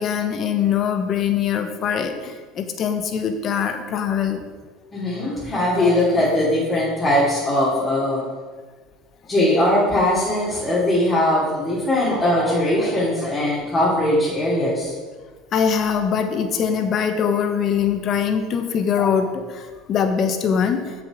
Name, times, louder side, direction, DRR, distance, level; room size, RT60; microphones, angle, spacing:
voice 1, 0.0-4.4 15.5-20.9, left 7 dB, 45° left, 7 dB, 1.1 m, -22 dB
voice 2, 4.9-8.2 9.3-14.9 19.0-19.1, left 1 dB, 25° left, -8 dB, 3.0 m, -20 dB
7.4 x 7.1 x 5.0 m, 1.4 s
supercardioid pair, 95°, 0 cm